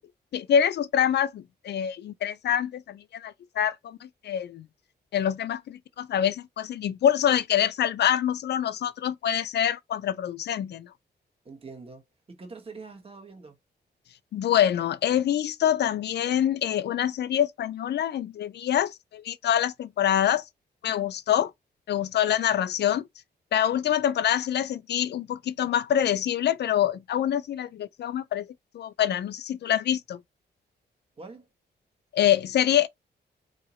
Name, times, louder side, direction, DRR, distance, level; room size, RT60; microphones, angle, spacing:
voice 1, 0.3-4.7 5.1-10.9 14.3-20.5 20.8-21.5 21.9-23.1 23.5-28.5 28.7-30.2 32.1-32.9, left 10 dB, 70° left, 0.4 m, -25 dB
voice 2, 11.4-13.6 31.2-31.5, right 4 dB, 30° right, 1.2 m, -44 dB
3.8 x 2.8 x 3.0 m
cardioid pair, 100°, 18 cm